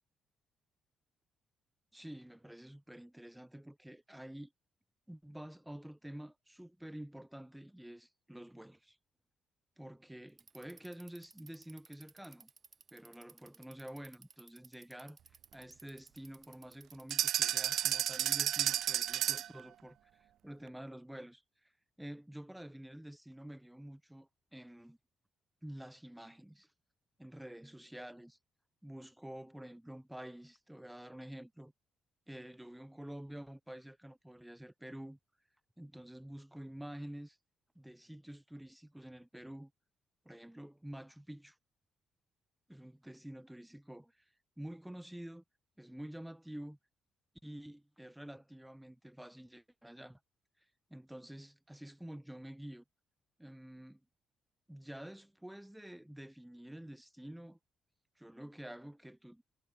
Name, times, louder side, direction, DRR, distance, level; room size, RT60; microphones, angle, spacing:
voice 1, 1.9-4.5 5.1-9.0 9.8-12.5 12.9-15.2 15.5-21.7 22.0-25.0 25.6-26.7 27.2-28.4 28.8-31.7 32.3-35.2 35.8-37.4 37.7-39.7 40.2-41.6 42.7-44.3 44.6-45.4 45.8-46.8 47.4-50.2 50.9-52.8 53.4-54.0 54.7-57.6 58.2-59.4, right 1 dB, 5° right, 2.4 m, -49 dB
Bicycle, 10.3-19.1, right 5 dB, 40° right, 5.1 m, -59 dB
sound 1, 17.1-19.6, right 12 dB, 75° right, 0.5 m, -32 dB
cardioid pair, 90°, 0 cm